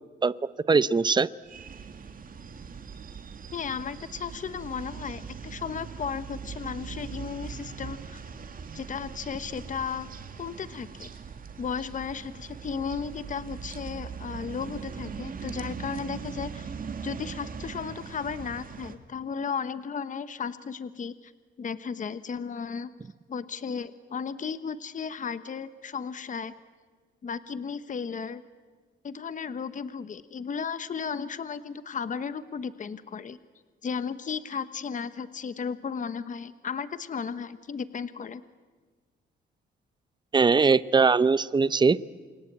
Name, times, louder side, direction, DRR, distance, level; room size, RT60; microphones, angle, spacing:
voice 1, 0.7-1.3 40.3-42.0, right 4 dB, 20° right, 16 dB, 0.8 m, -21 dB
sound 1, 1.4-18.9, right 6 dB, 45° right, 2.4 m, -40 dB
voice 2, 3.5-8.2 8.7-10.1 10.4-11.1 11.6-16.7 17.0-21.3 21.6-22.9 23.3-26.5 27.2-28.4 29.0-33.4 33.8-38.4, left 6 dB, 40° left, 13 dB, 1.1 m, -35 dB
28.5 x 23.0 x 8.7 m, 1.4 s
cardioid pair, 90°, 20 cm